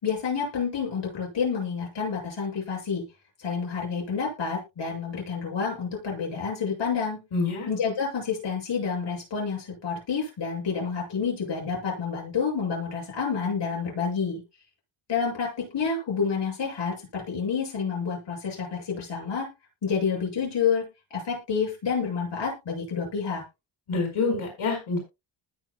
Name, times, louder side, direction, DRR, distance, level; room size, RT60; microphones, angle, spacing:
voice 1, 0.0-3.0 3.4-7.2 7.7-14.4 15.1-19.5 19.8-23.4, left 6 dB, 60° left, -1 dB, 7.5 m, -29 dB
voice 2, 7.3-7.7 23.9-25.0, left 4 dB, 80° left, 0 dB, 5.6 m, -26 dB
20.0 x 6.6 x 2.3 m, 0.24 s
wide cardioid pair, 135°, 48 cm